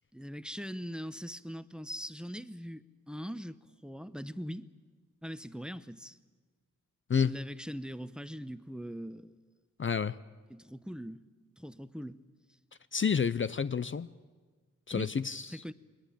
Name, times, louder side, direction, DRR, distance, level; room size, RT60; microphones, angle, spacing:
voice 1, 0.1-3.6 3.8-4.7 5.2-6.2 7.1-9.4 10.5-11.2 11.6-12.2 14.9-15.2 15.5-15.7, equal, 5° right, 0.9 m, -41 dB
voice 2, 9.8-10.2 12.9-14.1 14.9-15.6, left 6 dB, 40° left, 0.6 m, -29 dB
22.5 x 19.0 x 8.8 m
cardioid pair, 55°, 31 cm